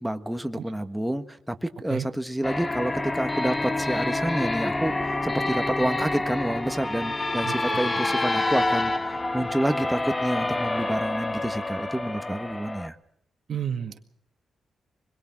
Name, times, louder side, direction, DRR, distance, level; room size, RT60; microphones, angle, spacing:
voice 1, 0.0-13.0, right 1 dB, 5° right, 7 dB, 1.5 m, -29 dB
sound 1, 2.4-12.9, left 2 dB, 20° left, 1.1 m, -28 dB
voice 2, 7.4-7.8 13.5-14.0, right 8 dB, 65° right, 6 dB, 2.0 m, -31 dB
25.0 x 21.5 x 6.1 m, 0.70 s
cardioid pair, 105°, 0 cm